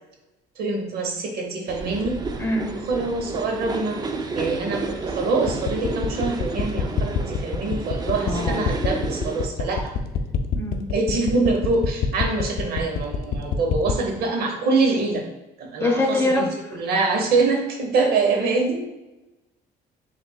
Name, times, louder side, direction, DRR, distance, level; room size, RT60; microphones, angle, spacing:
voice 1, 0.6-2.2 2.7-4.0 4.3-9.9 10.9-15.3 15.6-18.8, right 3 dB, 70° right, 2 dB, 0.9 m, -24 dB
sound 1, 1.7-9.5, right 3 dB, 25° right, 0.4 m, -31 dB
voice 2, 2.4-2.7 8.2-8.6 10.5-10.9 15.8-16.5, left 2 dB, 15° left, 0 dB, 0.9 m, -23 dB
sound 2, 5.5-14.0, left 8 dB, 65° left, 0.5 m, -26 dB
5.6 x 3.5 x 2.3 m, 1.0 s
cardioid pair, 110°, 17 cm